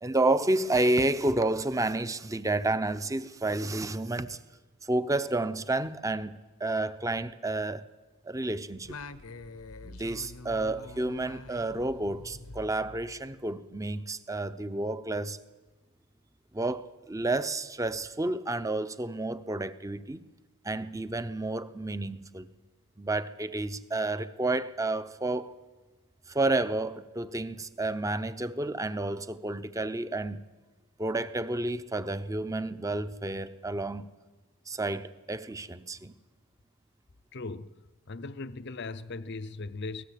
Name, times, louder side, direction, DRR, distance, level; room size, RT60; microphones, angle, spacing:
voice 1, 0.0-4.4 4.8-7.8 8.2-9.0 9.8-15.4 16.5-20.2 20.6-22.5 23.0-25.6 26.3-30.4 31.0-34.1 34.7-36.1, right 2 dB, 15° right, 0.7 m, -30 dB
Singing, 8.8-13.6, left 3 dB, 75° left, 1.1 m, -45 dB
voice 2, 37.3-40.0, left 3 dB, 50° left, 0.6 m, -39 dB
24.0 x 18.0 x 8.4 m
head